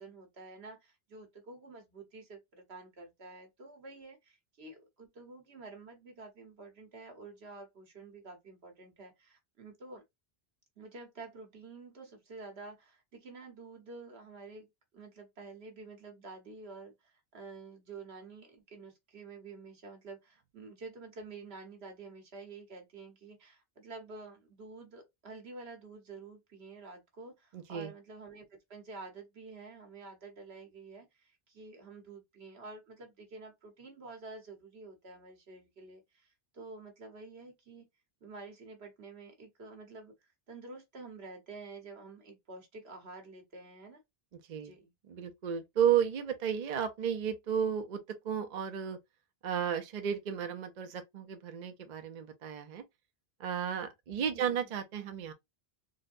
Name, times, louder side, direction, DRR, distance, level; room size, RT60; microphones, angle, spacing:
voice 1, 0.0-10.0 10.8-37.9 38.2-44.0 44.6-44.9 54.3-54.7, right 3 dB, 80° right, 1.4 m, -49 dB
voice 2, 27.5-27.9 44.5-44.7 45.1-48.0 48.2-49.0 49.4-52.8 53.4-55.3, right 8 dB, 50° right, 0.6 m, -33 dB
3.9 x 2.1 x 2.5 m
omnidirectional pair, 1.0 m